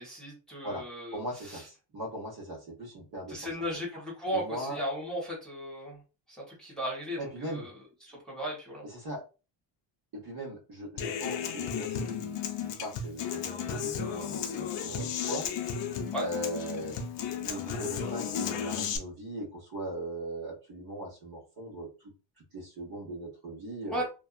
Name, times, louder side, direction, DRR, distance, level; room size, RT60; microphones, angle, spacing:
voice 1, 0.0-1.6 3.3-6.0 6.5-7.7 8.1-8.8 16.1-16.3 23.9-24.0, equal, ahead, -5 dB, 1.2 m, -36 dB
voice 2, 1.1-3.5 4.3-4.8 7.2-7.7 8.8-9.2 10.1-15.5 16.2-17.0 17.4-22.1 22.5-24.0, right 1 dB, 50° right, -2 dB, 1.2 m, -39 dB
Human voice / Acoustic guitar, 11.0-19.0, left 7 dB, 70° left, 0.6 m, -34 dB
2.6 x 2.3 x 2.4 m, 0.32 s
cardioid pair, 135°, 46 cm